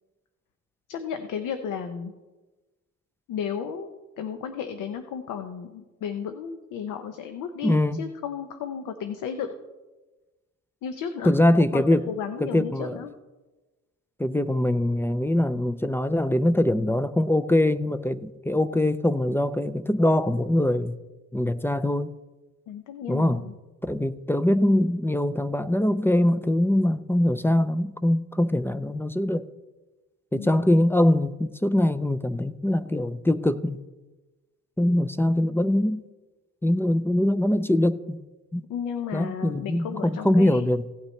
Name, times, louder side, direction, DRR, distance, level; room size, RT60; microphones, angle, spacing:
voice 1, 0.9-2.1 3.3-9.5 10.8-11.3 11.6-13.1 22.7-23.5 30.3-30.7 38.7-40.7, left 7 dB, 90° left, 8 dB, 0.8 m, -33 dB
voice 2, 7.6-8.0 11.2-12.1 12.4-13.0 14.2-21.0 21.3-22.1 23.1-23.5 23.8-29.5 30.3-33.8 34.8-36.0 36.6-38.2 38.5-38.6 39.1-40.9, left 1 dB, 10° left, 12 dB, 0.4 m, -23 dB
16.5 x 9.1 x 3.2 m, 1.2 s
cardioid pair, 90°, 30 cm